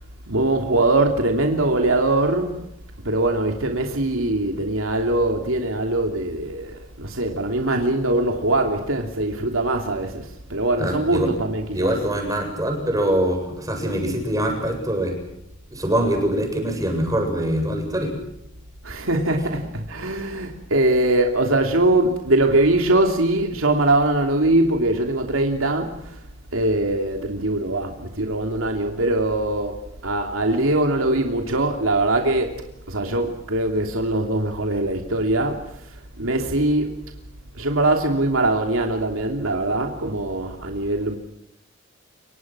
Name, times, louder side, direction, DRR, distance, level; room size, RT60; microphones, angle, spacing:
voice 1, 0.3-2.7 3.0-11.9 18.8-26.2 26.5-32.5 32.9-36.9 37.5-41.2, right 2 dB, 85° right, 3.0 m, -22 dB
voice 2, 10.8-11.3 11.7-15.2 15.7-18.1 20.1-20.2, right 1 dB, 15° right, 7.8 m, -23 dB
29.0 x 24.5 x 6.2 m
head